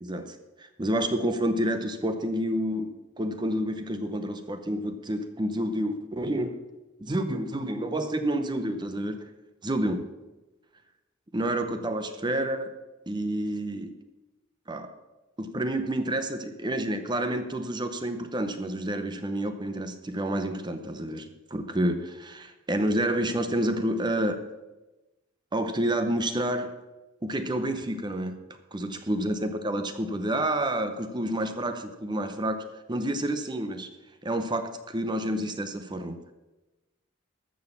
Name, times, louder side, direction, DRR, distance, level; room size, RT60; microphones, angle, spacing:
voice 1, 0.0-6.5 7.0-9.3 9.6-10.1 11.3-12.7 13.1-14.0 14.7-14.9 15.4-24.5 25.5-26.7 27.2-28.4 28.7-33.9 34.2-36.3, right 1 dB, 20° right, 9 dB, 0.7 m, -29 dB
14.0 x 6.3 x 7.0 m, 1.1 s
head